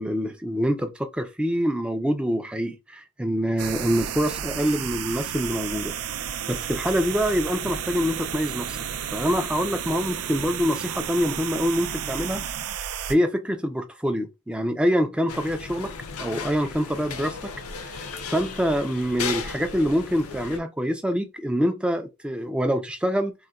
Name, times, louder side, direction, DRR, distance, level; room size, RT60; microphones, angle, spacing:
voice 1, 0.0-8.8 9.1-12.4 13.1-15.9 16.2-17.5 17.8-23.3, equal, 5° right, 0.3 m, -25 dB
sound 1, 3.6-13.1, right 8 dB, 90° right, 0.4 m, -32 dB
sound 2, 15.3-20.6, left 5 dB, 85° left, 0.5 m, -35 dB
3.8 x 2.1 x 2.3 m
head